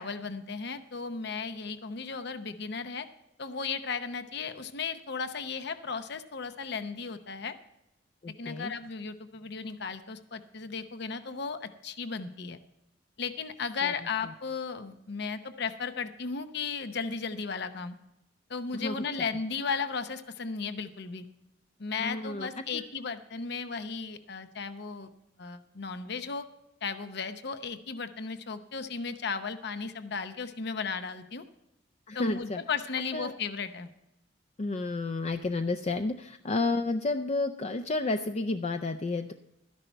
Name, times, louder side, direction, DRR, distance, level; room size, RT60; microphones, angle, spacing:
voice 1, 0.0-3.1 3.4-7.5 8.4-12.6 13.2-17.9 18.5-21.3 21.8-25.1 25.4-26.4 26.8-31.4 32.1-33.9, left 5 dB, 65° left, 10 dB, 0.8 m, -35 dB
voice 2, 8.2-8.7 18.8-18.9 22.0-22.5 22.7-22.8 32.1-32.6 33.1-33.3 34.6-39.3, left 3 dB, 35° left, 7 dB, 0.5 m, -31 dB
12.5 x 10.5 x 4.4 m, 0.87 s
head